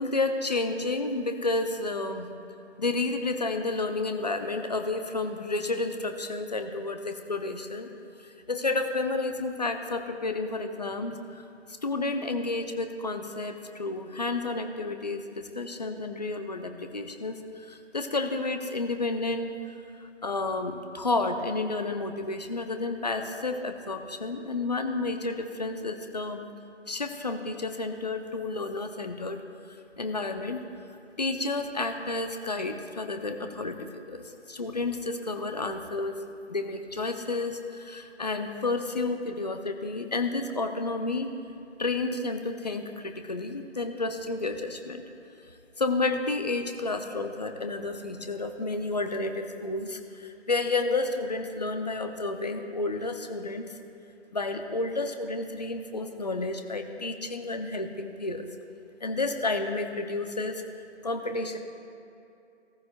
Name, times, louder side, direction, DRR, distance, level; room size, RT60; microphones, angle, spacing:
voice 1, 0.0-2.3 2.8-7.9 8.2-11.4 11.8-19.7 20.0-26.4 26.9-29.4 30.0-30.6 31.2-36.2 36.5-41.4 41.8-45.0 45.8-53.7 54.3-58.5 59.0-60.7 61.0-61.6, left 3 dB, 35° left, 6 dB, 0.7 m, -31 dB
17.5 x 14.0 x 2.2 m, 2.6 s
figure-of-eight pair, 155°, 36 cm